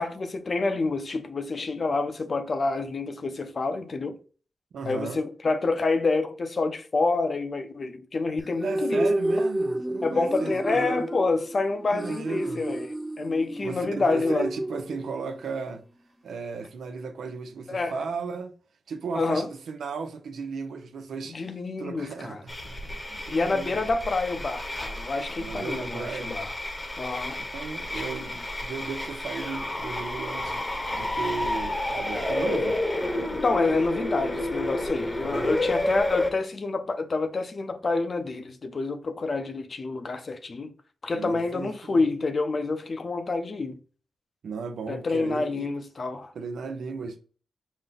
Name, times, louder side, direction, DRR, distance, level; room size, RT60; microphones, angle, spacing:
voice 1, 0.0-4.2 4.8-9.1 10.0-14.5 17.7-17.9 19.1-19.5 21.3-22.4 23.3-26.5 27.0-27.4 27.9-28.0 33.4-40.7 41.0-43.8 44.9-46.3, left 3 dB, 55° left, 0.7 m, -28 dB
voice 2, 4.7-5.2 8.6-11.1 11.9-12.7 13.6-15.8 16.2-18.5 18.9-23.8 25.4-26.4 27.5-32.8 35.2-35.7 41.1-42.0 44.4-45.7 46.3-47.2, right 5 dB, 90° right, 0.6 m, -35 dB
sound 1, 8.4-15.4, right 1 dB, 5° right, 0.4 m, -30 dB
sound 2, 22.5-36.3, left 1 dB, 30° left, 0.9 m, -30 dB
5.2 x 2.2 x 3.9 m
cardioid pair, 70°, 0 cm